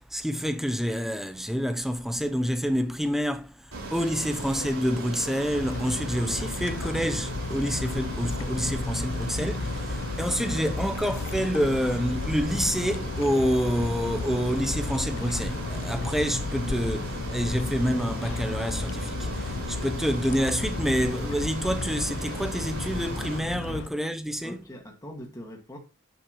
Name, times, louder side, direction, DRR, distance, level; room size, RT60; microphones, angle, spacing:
voice 1, 0.0-24.6, equal, ahead, 0.7 m, -28 dB
Ocean, 3.7-23.4, right 2 dB, 70° right, 4.3 m, -37 dB
sound 1, 5.5-23.9, left 3 dB, 55° left, 0.6 m, -33 dB
voice 2, 24.4-25.8, equal, 15° left, 2.0 m, -42 dB
10.0 x 9.0 x 3.1 m
head